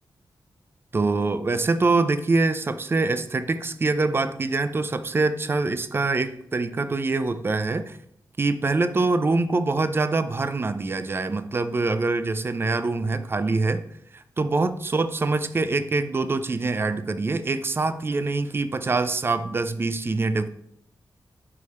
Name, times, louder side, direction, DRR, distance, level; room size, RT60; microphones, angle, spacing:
voice 1, 0.9-8.0 8.4-13.8 14.4-20.5, right 3 dB, 30° right, 12 dB, 0.4 m, -24 dB
6.6 x 4.8 x 4.2 m, 0.74 s
wide cardioid pair, 140°, 8 cm